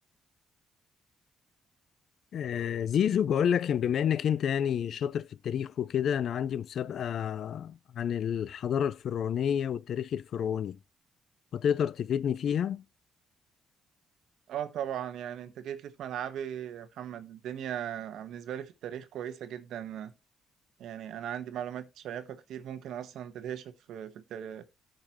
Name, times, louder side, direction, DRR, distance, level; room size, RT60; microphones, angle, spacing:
voice 1, 2.3-10.8 11.5-12.8, left 8 dB, 65° left, 0.4 m, -29 dB
voice 2, 14.5-20.1 20.8-24.6, right 10 dB, 80° right, 1.1 m, -38 dB
13.5 x 5.2 x 2.9 m
cardioid pair, 90°, 0 cm